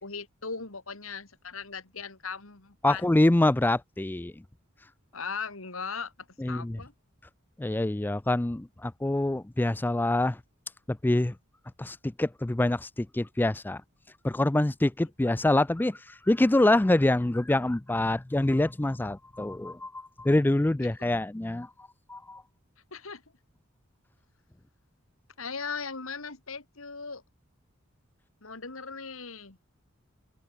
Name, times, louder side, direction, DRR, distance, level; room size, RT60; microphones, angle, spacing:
voice 1, 0.0-3.0 5.1-6.1 6.4-6.9 20.8-20.9 22.9-23.2 25.4-27.2 28.4-29.6, left 5 dB, 80° left, 3.0 m, -38 dB
voice 2, 2.8-4.3 6.4-6.8 7.6-10.4 10.9-11.3 11.8-13.8 14.2-21.7 22.1-22.4, left 1 dB, 10° left, 0.3 m, -25 dB
open air
head